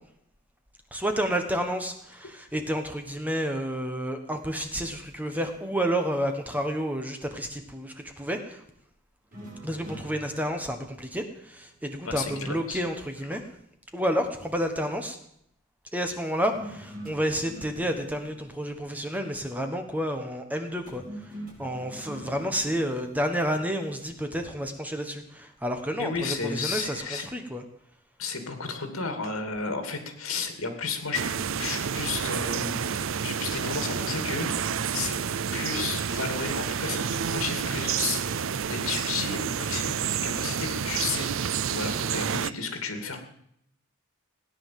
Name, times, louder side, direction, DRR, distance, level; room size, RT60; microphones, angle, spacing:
voice 1, 0.9-8.6 9.6-13.4 13.9-15.2 15.9-27.6, equal, 5° right, 5 dB, 1.3 m, -30 dB
sound 1, 9.3-12.7 16.5-19.9 20.9-24.7, right 1 dB, 40° right, 5.7 m, -46 dB
voice 2, 12.0-12.8 26.0-27.2 28.2-31.2 31.6-32.8 33.2-35.2 35.5-41.3 41.7-43.2, left 4 dB, 70° left, 6 dB, 2.6 m, -33 dB
sound 2, 31.1-42.5, right 7 dB, 65° right, 0.5 m, -29 dB
17.0 x 9.7 x 7.6 m, 0.72 s
head